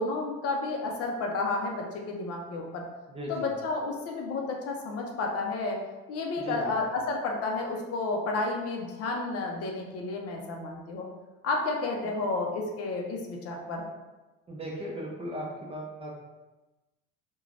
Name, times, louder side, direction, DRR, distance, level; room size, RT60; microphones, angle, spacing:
voice 1, 0.0-2.8 3.3-5.8 6.1-11.1 11.4-13.8, left 3 dB, 50° left, 1 dB, 0.5 m, -31 dB
voice 2, 3.1-3.5 6.4-6.7 14.5-16.1, equal, 20° right, -3 dB, 0.5 m, -37 dB
3.2 x 2.2 x 2.5 m, 1.1 s
cardioid pair, 120°, 31 cm